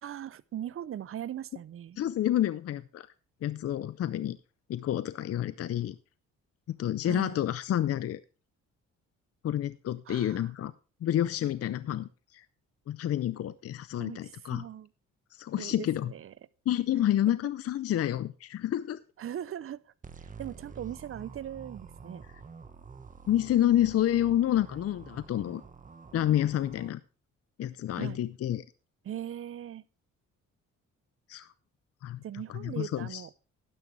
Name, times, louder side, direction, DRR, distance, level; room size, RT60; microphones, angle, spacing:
voice 1, 0.0-2.0 7.0-7.4 10.1-10.5 14.0-14.9 15.6-16.3 19.2-22.2 27.9-28.2 29.0-29.8 32.2-33.3, right 10 dB, 45° right, 0.6 m, -40 dB
voice 2, 2.0-3.1 3.4-4.4 4.7-6.0 6.8-8.2 9.4-10.7 11.0-12.4 12.9-14.6 15.3-16.1 16.7-19.0 23.3-25.6 26.1-27.0 27.6-28.6 31.3-31.5 32.0-32.2 32.5-33.3, left 12 dB, 50° left, 0.6 m, -29 dB
sound 1, 20.0-26.9, right 5 dB, 25° right, 1.2 m, -48 dB
11.5 x 11.0 x 3.2 m
cardioid pair, 90°, 30 cm